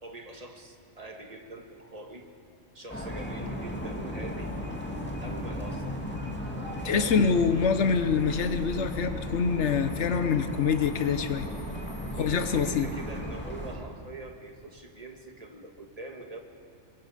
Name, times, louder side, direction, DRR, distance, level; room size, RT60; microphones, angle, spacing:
voice 1, 0.0-2.3 2.7-4.6 5.2-5.9 6.8-7.2 12.1-16.4, right 2 dB, 30° right, 3 dB, 1.7 m, -43 dB
sound 1, 2.9-13.7, equal, 10° left, 2.3 m, -36 dB
voice 2, 6.8-11.5 12.2-12.9, left 6 dB, 70° left, 10 dB, 1.2 m, -25 dB
25.0 x 21.5 x 5.1 m, 2.4 s
omnidirectional pair, 1.2 m